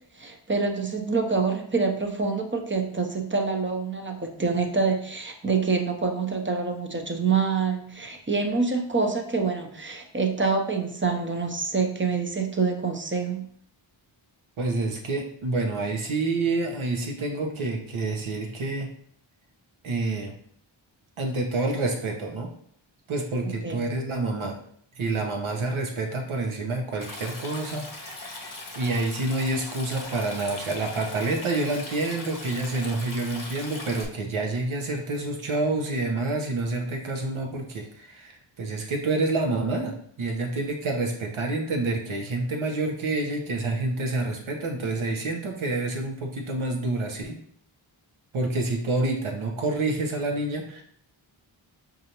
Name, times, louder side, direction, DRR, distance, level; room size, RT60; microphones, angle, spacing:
voice 1, 0.2-13.5 23.6-23.8, right 4 dB, 25° right, 3 dB, 0.6 m, -26 dB
voice 2, 14.6-18.9 19.8-20.3 21.2-22.5 23.1-24.6 25.0-28.5 28.8-47.4 48.3-50.8, right 2 dB, 80° right, 2 dB, 0.9 m, -28 dB
Stream, 27.0-34.1, left 2 dB, 40° left, 0.9 m, -40 dB
5.2 x 2.6 x 2.9 m, 0.64 s
wide cardioid pair, 70°, 48 cm